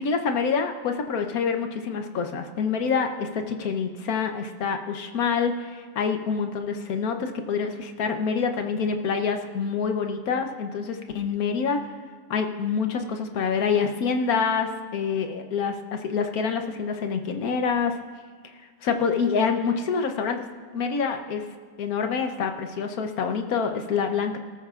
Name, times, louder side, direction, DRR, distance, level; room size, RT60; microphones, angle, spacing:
voice 1, 0.0-11.8 12.3-18.0 18.8-20.5 20.7-21.4 21.8-24.4, left 5 dB, 70° left, 5 dB, 1.3 m, -26 dB
17.5 x 14.0 x 2.4 m, 1.5 s
omnidirectional pair, 1.6 m